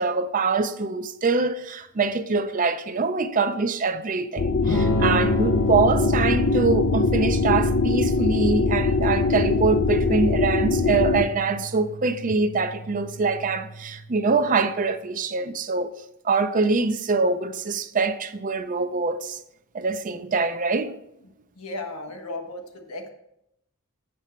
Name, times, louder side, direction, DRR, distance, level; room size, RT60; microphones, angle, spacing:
voice 1, 0.0-15.9 16.2-19.4 19.7-20.9, right 4 dB, 35° right, 0.5 m, -24 dB
sound 1, 4.4-11.2, left 3 dB, 45° left, 0.4 m, -22 dB
Electric guitar / Strum, 4.6-14.4, right 1 dB, 75° left, 0.8 m, -31 dB
voice 2, 21.2-23.1, left 2 dB, 90° left, 1.4 m, -36 dB
7.4 x 7.0 x 4.4 m
head